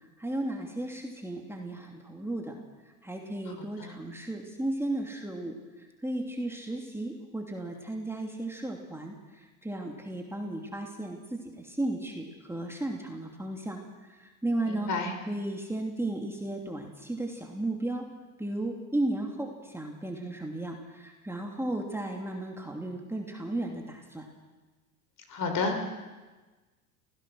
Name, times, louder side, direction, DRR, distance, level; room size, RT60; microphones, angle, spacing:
voice 1, 0.2-2.6 3.0-5.6 6.0-9.1 9.6-13.8 14.2-14.9 15.2-18.1 18.4-24.3, right 1 dB, 5° right, 0 dB, 2.9 m, -34 dB
voice 2, 14.7-15.1 25.3-25.8, left 4 dB, 45° left, 5 dB, 4.7 m, -30 dB
27.0 x 16.5 x 6.3 m, 1.3 s
hypercardioid pair, 85°, 45 cm